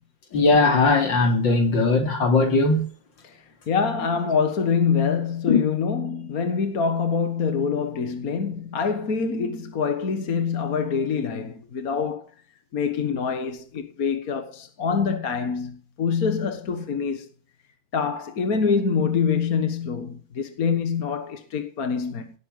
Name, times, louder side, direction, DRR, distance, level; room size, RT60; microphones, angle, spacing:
voice 1, 0.3-2.9 5.5-5.6, left 3 dB, 60° left, 3.3 m, -19 dB
voice 2, 3.7-12.2 12.7-17.3 17.9-22.4, left 6 dB, 45° left, 1.8 m, -25 dB
17.5 x 10.0 x 5.6 m
omnidirectional pair, 2.3 m